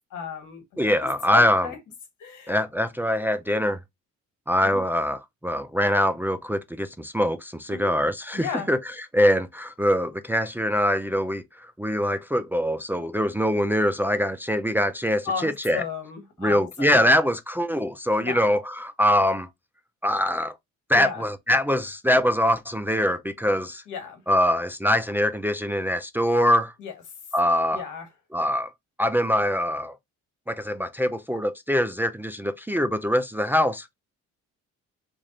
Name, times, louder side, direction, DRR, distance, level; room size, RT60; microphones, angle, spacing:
voice 1, 0.1-1.8 2.2-2.6 4.6-4.8 7.7-7.9 8.3-8.7 15.2-17.0 18.2-18.5 20.9-21.2 23.9-24.2 26.8-26.9 27.7-28.1, left 6 dB, 85° left, 1.5 m, -34 dB
voice 2, 0.8-1.7 2.5-3.8 4.5-8.8 9.1-15.8 16.4-19.5 20.0-20.5 20.9-23.8 24.3-26.7 27.3-27.8 28.3-28.7 29.0-30.0 30.5-33.9, equal, 5° right, 0.4 m, -23 dB
3.1 x 2.5 x 3.9 m
cardioid pair, 90°, 30 cm